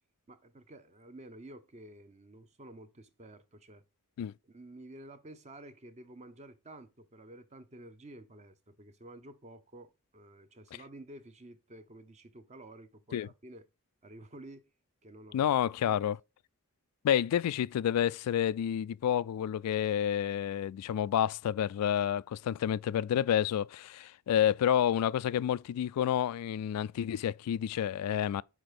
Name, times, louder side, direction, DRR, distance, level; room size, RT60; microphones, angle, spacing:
voice 1, 0.3-3.8 4.4-13.6 14.0-14.7 15.0-15.5 15.9-16.1, right 1 dB, 30° right, 0.7 m, -51 dB
voice 2, 15.3-16.2 17.0-28.4, left 10 dB, 85° left, 0.3 m, -29 dB
6.0 x 4.4 x 4.9 m
head